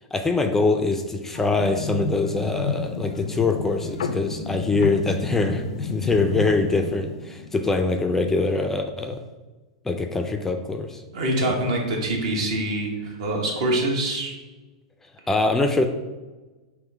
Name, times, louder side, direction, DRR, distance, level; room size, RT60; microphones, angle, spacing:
voice 1, 0.1-9.2 9.9-11.0 11.4-11.5 15.3-15.9, left 3 dB, 10° left, 6 dB, 0.3 m, -23 dB
sound 1, 1.3-7.8, left 4 dB, 80° left, 0.4 m, -31 dB
voice 2, 11.1-14.3, right 1 dB, 65° right, 0 dB, 1.3 m, -25 dB
3.6 x 3.1 x 4.6 m, 1.2 s
hypercardioid pair, 115°, 3 cm